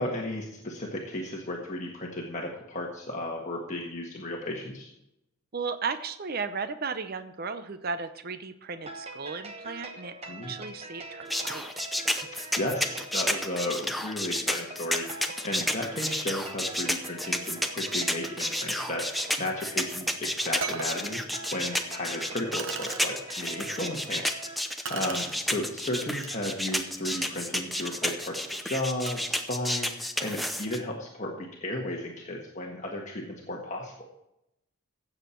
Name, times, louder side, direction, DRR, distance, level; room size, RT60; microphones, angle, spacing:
voice 1, 0.0-4.9 10.3-10.5 12.6-15.0 15.4-21.2 21.5-28.4 28.6-33.9, left 1 dB, 35° left, -1 dB, 1.5 m, -34 dB
voice 2, 5.5-11.7 23.6-23.7, right 5 dB, 45° right, 11 dB, 0.7 m, -35 dB
sound 1, 8.7-24.6, right 2 dB, 30° right, 1.1 m, -44 dB
sound 2, 11.3-30.8, left 1 dB, ahead, 0.7 m, -31 dB
sound 3, 20.0-20.1 20.6-21.0 21.8-21.9 22.5-23.0 24.8-25.4 26.1-26.3 26.8-29.4, right 5 dB, 60° right, 1.0 m, -39 dB
15.5 x 7.4 x 4.5 m, 0.83 s
head